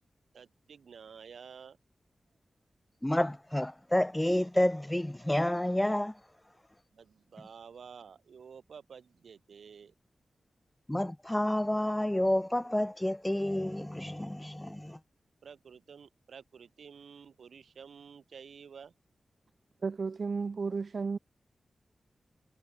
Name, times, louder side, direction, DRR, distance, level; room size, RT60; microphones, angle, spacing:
voice 1, 0.3-1.8 6.9-9.9 15.4-18.9, right 6 dB, 90° right, 2.8 m, -51 dB
voice 2, 3.0-6.2 10.9-15.0, left 1 dB, 10° left, 0.6 m, -29 dB
voice 3, 19.8-21.2, right 4 dB, 60° right, 0.6 m, -33 dB
wide cardioid pair, 85°, 0 cm